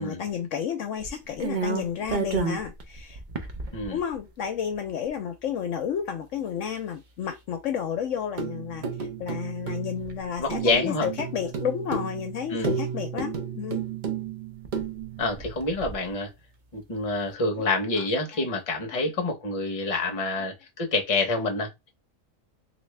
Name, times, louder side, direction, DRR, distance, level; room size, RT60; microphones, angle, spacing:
voice 1, 0.0-3.2 3.9-8.8 9.2-13.8 17.6-17.7 17.9-18.1 18.3-18.4 18.9-19.1, left 8 dB, 70° left, 0.9 m, -31 dB
sound 1, 1.0-4.2 4.8-4.9 5.1-5.2 8.4-16.1, right 5 dB, 55° right, 0.5 m, -32 dB
voice 2, 10.4-11.1 12.5-12.7 15.2-16.3 16.7-21.9, left 2 dB, 30° left, 0.8 m, -27 dB
3.3 x 2.7 x 3.2 m
omnidirectional pair, 1.5 m